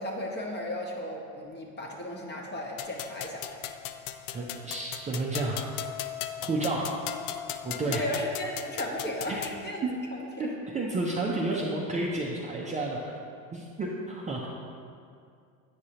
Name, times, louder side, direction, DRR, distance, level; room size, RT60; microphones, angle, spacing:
voice 1, 0.0-3.5 7.8-9.8 10.1-10.5 11.5-11.6, left 1 dB, 25° left, 0 dB, 1.1 m, -35 dB
sound 1, 2.8-9.6, left 10 dB, 70° left, 0.5 m, -38 dB
voice 2, 4.3-5.7 6.4-6.9 7.6-8.0 9.3-9.4 9.8-9.9 10.4-13.1 13.5-14.5, right 2 dB, 20° right, -3 dB, 0.5 m, -31 dB
8.7 x 4.8 x 2.8 m, 2.4 s
supercardioid pair, 110°, 42 cm